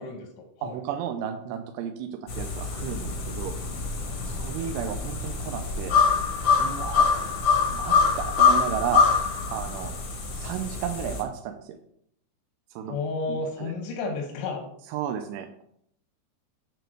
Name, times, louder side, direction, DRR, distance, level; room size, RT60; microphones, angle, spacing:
voice 1, 0.0-0.8 4.6-4.7 7.1-7.3 12.8-14.7, left 3 dB, 90° left, 1 dB, 3.5 m, -32 dB
voice 2, 0.6-3.6 4.2-6.0 6.6-7.0 7.7-9.1 9.5-9.9 10.3-11.7 12.8-13.0 13.3-13.7 14.9-15.6, right 9 dB, 80° right, 5 dB, 2.6 m, -33 dB
sound 1, 2.3-11.2, left 5 dB, 70° left, 1.4 m, -25 dB
9.1 x 4.2 x 6.4 m, 0.71 s
omnidirectional pair, 5.1 m